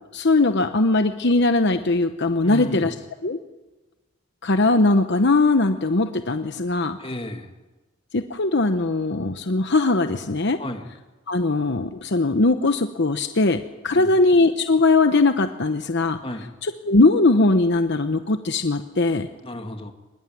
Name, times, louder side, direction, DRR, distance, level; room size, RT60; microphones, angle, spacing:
voice 1, 0.1-2.9 3.2-3.4 4.4-7.0 8.1-10.6 11.3-13.6 13.8-16.2 16.6-19.3, left 2 dB, 55° left, 8 dB, 1.0 m, -20 dB
voice 2, 2.4-2.9 7.0-7.5 10.6-10.8 13.9-14.1 16.2-16.5 19.4-19.9, left 1 dB, 25° left, 5 dB, 2.1 m, -32 dB
24.0 x 21.5 x 9.3 m, 1.2 s
head